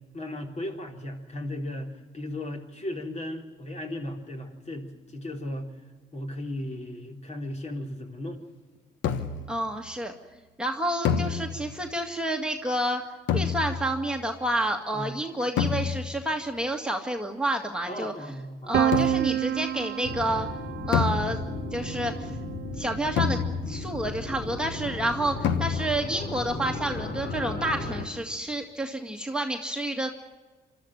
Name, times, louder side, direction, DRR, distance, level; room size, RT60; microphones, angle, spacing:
voice 1, 0.1-5.8 6.1-8.4 14.9-15.1 17.9-18.8, left 1 dB, 35° left, 2 dB, 4.0 m, -36 dB
sound 1, 9.0-9.6 11.0-11.9 13.3-14.1 15.6-16.3 18.9-19.5 20.9-21.8 23.2-24.0 25.4-26.1, left 7 dB, 80° left, 1.3 m, -28 dB
voice 2, 9.5-10.1 10.6-13.0 13.3-18.1 18.7-20.5 20.8-21.4 21.7-22.3 22.8-23.4 23.7-30.1, right 1 dB, 5° right, 2 dB, 2.0 m, -29 dB
Piano, 18.7-24.5, right 11 dB, 60° right, 0.7 m, -30 dB
sound 2, 20.0-28.1, left 3 dB, 55° left, 3.6 m, -35 dB
25.5 x 13.0 x 9.1 m, 1.3 s
supercardioid pair, 55°, 19 cm